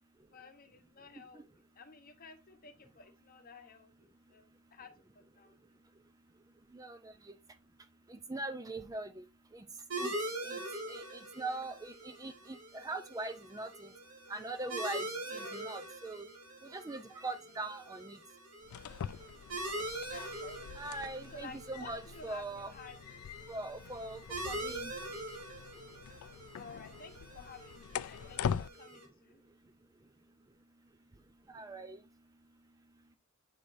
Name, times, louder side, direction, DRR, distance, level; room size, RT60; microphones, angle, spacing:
voice 1, 0.3-5.6 15.3-15.8 20.1-20.8 21.3-23.0 24.5-24.6 26.5-29.4, left 4 dB, 40° left, 1.0 m, -53 dB
voice 2, 6.7-7.3 8.1-9.2 9.5-9.7 10.0-10.1 10.4-10.6 10.9-13.9 14.3-16.3 16.6-18.2 20.8-22.7 23.5-24.9 31.5-32.0, right 2 dB, 15° right, 0.4 m, -42 dB
sound 1, 9.9-29.0, right 1 dB, 65° right, 2.6 m, -43 dB
sound 2, 18.6-28.7, left 8 dB, 85° left, 0.3 m, -43 dB
7.6 x 5.0 x 2.6 m
head